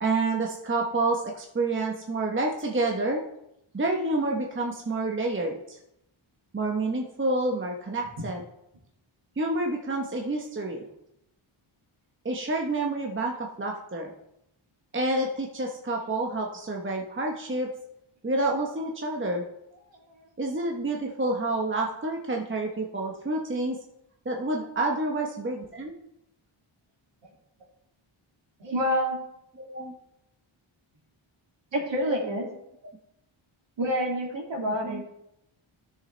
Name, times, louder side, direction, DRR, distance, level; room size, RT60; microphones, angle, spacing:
voice 1, 0.0-3.2 3.7-5.6 6.5-8.4 9.4-10.8 12.2-14.1 14.9-17.7 18.2-19.4 20.4-23.8 24.3-25.9 29.6-29.9 34.8-35.0, right 2 dB, 25° right, 0 dB, 1.0 m, -28 dB
voice 2, 28.6-29.2 31.7-32.5 33.8-35.1, equal, 60° right, -1 dB, 2.5 m, -27 dB
13.5 x 6.7 x 3.3 m, 0.82 s
wide cardioid pair, 130°, 50 cm